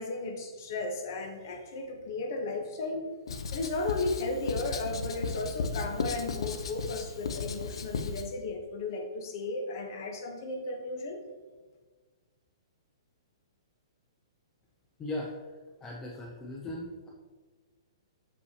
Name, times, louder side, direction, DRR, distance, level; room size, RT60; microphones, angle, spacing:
voice 1, 0.0-3.1 3.5-11.2, left 2 dB, 40° left, 4 dB, 0.8 m, -35 dB
Writing, 3.3-8.3, left 4 dB, 70° left, 0.5 m, -35 dB
voice 2, 15.0-15.4 15.8-17.1, left 1 dB, 10° left, -2 dB, 0.4 m, -38 dB
6.5 x 5.4 x 2.7 m, 1.4 s
hypercardioid pair, 175°, 3 cm